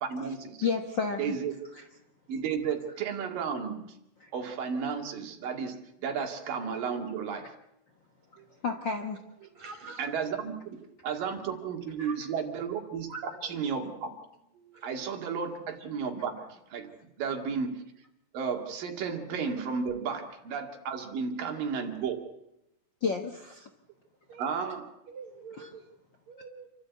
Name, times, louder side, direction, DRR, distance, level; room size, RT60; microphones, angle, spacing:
voice 1, 0.0-0.6 1.2-1.7 2.3-4.0 4.3-7.6 8.4-8.6 9.4-9.5 10.0-13.1 13.4-14.2 14.6-18.0 18.3-22.2 24.4-24.9, right 6 dB, 80° right, 4 dB, 3.8 m, -33 dB
voice 2, 0.6-1.3 4.2-4.3 8.6-9.2 23.0-23.7, left 5 dB, 50° left, 3 dB, 1.5 m, -30 dB
voice 3, 9.5-10.1 12.0-12.1 13.1-13.6 14.7-14.8 18.6-18.7 24.3-24.5 25.1-25.8 26.3-26.7, right 5 dB, 55° right, 3 dB, 4.3 m, -45 dB
28.0 x 13.5 x 8.4 m, 0.86 s
omnidirectional pair, 3.9 m